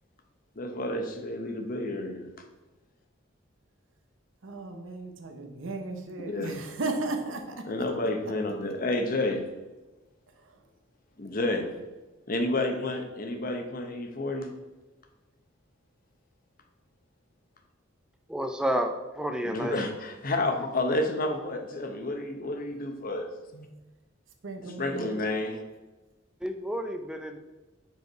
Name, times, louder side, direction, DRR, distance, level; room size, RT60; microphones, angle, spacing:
voice 1, 0.6-2.3 6.3-6.5 7.7-9.4 11.2-11.7 12.3-14.5 19.4-23.7 24.8-25.6, left 2 dB, 45° left, 5 dB, 0.8 m, -30 dB
voice 2, 4.4-7.6 10.4-10.6 24.4-25.3, right 2 dB, 85° right, 5 dB, 0.8 m, -35 dB
voice 3, 18.3-19.8 26.4-27.4, equal, 5° right, 5 dB, 0.4 m, -30 dB
5.4 x 4.5 x 4.6 m, 1.1 s
head